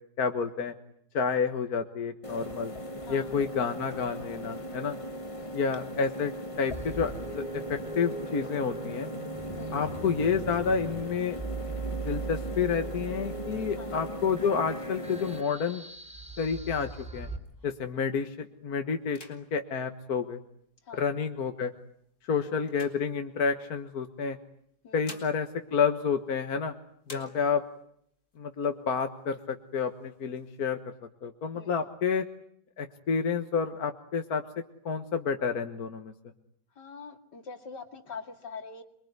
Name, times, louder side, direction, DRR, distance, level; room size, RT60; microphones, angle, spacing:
voice 1, 0.2-0.7 1.1-2.7 3.1-5.0 5.5-6.3 6.6-7.4 7.7-9.1 9.7-11.4 12.0-15.8 16.4-17.3 17.6-20.4 20.9-21.7 22.3-24.4 24.9-26.7 27.1-27.6 28.4-30.8 31.2-32.2 32.8-34.4 34.9-36.1, left 6 dB, 60° left, 7 dB, 1.9 m, -29 dB
sound 1, 2.2-15.4, equal, 20° left, 1.4 m, -39 dB
voice 2, 3.0-3.3 5.3-5.6 9.5-9.9 13.8-14.0 20.8-21.1 22.3-22.5 24.8-25.2 27.1-27.5 31.5-31.9 36.8-38.8, left 5 dB, 75° left, 7 dB, 3.0 m, -45 dB
sound 2, 6.7-17.4, right 4 dB, 5° right, 2.9 m, -40 dB
sound 3, 15.8-18.0 18.4-18.7 19.0-20.9 21.6-23.8 24.6-26.7 27.0-27.9 28.3-28.4 28.7-29.4 29.8-30.7, left 2 dB, 45° left, 4.4 m, -53 dB
27.5 x 23.0 x 9.5 m, 0.70 s
omnidirectional pair, 1.9 m